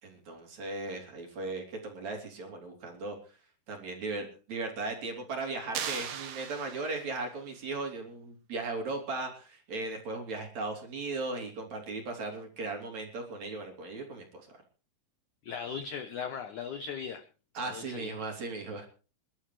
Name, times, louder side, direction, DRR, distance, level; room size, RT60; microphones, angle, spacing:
voice 1, 0.0-3.2 3.7-14.3 14.5-14.6 17.6-18.9, right 3 dB, 45° right, 1 dB, 4.0 m, -37 dB
sound 1, 5.7-7.3, right 8 dB, 65° right, 2.9 m, -38 dB
voice 2, 15.4-17.2 17.6-18.1, left 6 dB, 75° left, 8 dB, 1.8 m, -38 dB
26.5 x 12.0 x 3.3 m, 0.36 s
omnidirectional pair, 4.9 m